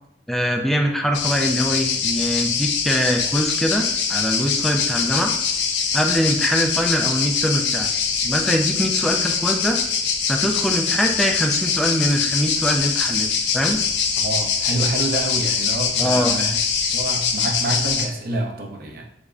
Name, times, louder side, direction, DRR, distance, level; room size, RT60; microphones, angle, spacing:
voice 1, 0.3-5.3 5.9-7.9 8.2-9.8 10.3-13.8 16.0-16.4, equal, ahead, 2 dB, 0.3 m, -23 dB
sound 1, 1.1-18.1, left 6 dB, 75° left, 0.4 m, -23 dB
voice 2, 14.2-16.6 16.9-19.0, right 2 dB, 55° right, 2 dB, 0.5 m, -27 dB
3.4 x 2.1 x 3.7 m, 0.79 s
head